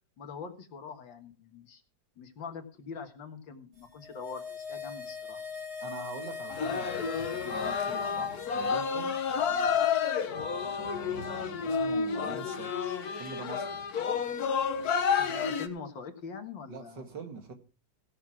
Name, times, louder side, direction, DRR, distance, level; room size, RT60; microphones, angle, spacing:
voice 1, 0.2-1.8 2.2-5.4 15.2-17.1, left 5 dB, 85° left, 7 dB, 2.4 m, -43 dB
sound 1, 3.8-9.3 9.6-9.7, left 5 dB, 35° right, 2.5 m, -42 dB
voice 2, 5.8-9.2 10.8-13.8 16.7-17.5, right 4 dB, 70° right, 5 dB, 2.8 m, -44 dB
sound 2, 6.5-15.7, left 6 dB, 60° left, 1.6 m, -30 dB
17.0 x 6.7 x 6.0 m, 0.34 s
omnidirectional pair, 2.0 m